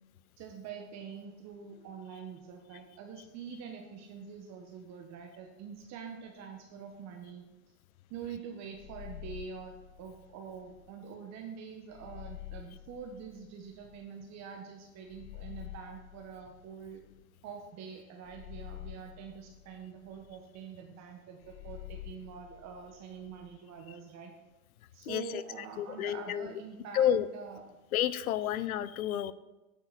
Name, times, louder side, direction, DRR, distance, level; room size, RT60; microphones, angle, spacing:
voice 1, 0.4-7.4 8.1-17.0 17.4-24.3 24.9-27.6, right 6 dB, 40° right, 3 dB, 1.2 m, -45 dB
sound 1, 8.7-10.9 11.9-14.1 15.1-17.4 18.2-20.4 21.4-23.6, left 15 dB, 35° left, 0.5 m, -48 dB
voice 2, 25.0-25.4 25.8-26.5 26.9-27.3 27.9-29.3, left 10 dB, 85° left, 17 dB, 0.6 m, -30 dB
8.8 x 8.0 x 4.1 m, 1.0 s
hypercardioid pair, 105°, 42 cm